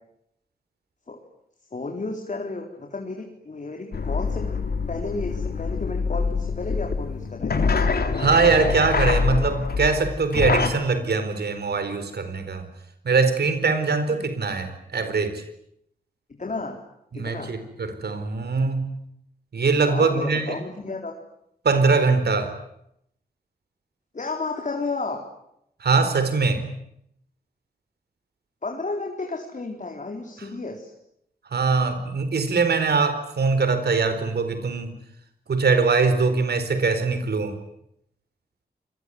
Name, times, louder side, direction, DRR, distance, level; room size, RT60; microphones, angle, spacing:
voice 1, 1.7-4.5 4.9-7.8 16.3-16.8 17.1-17.5 19.9-21.1 24.1-25.2 28.6-30.9, left 3 dB, 50° left, 2 dB, 3.9 m, -32 dB
sound 1, 3.9-10.7, left 5 dB, 75° left, 3.3 m, -25 dB
voice 2, 8.2-12.7 13.0-15.4 17.1-18.9 19.5-20.6 21.6-22.6 25.8-26.6 31.5-34.9 35.5-37.6, right 4 dB, 85° right, 10 dB, 4.3 m, -22 dB
28.0 x 21.5 x 9.5 m, 0.76 s
wide cardioid pair, 85°, 16 cm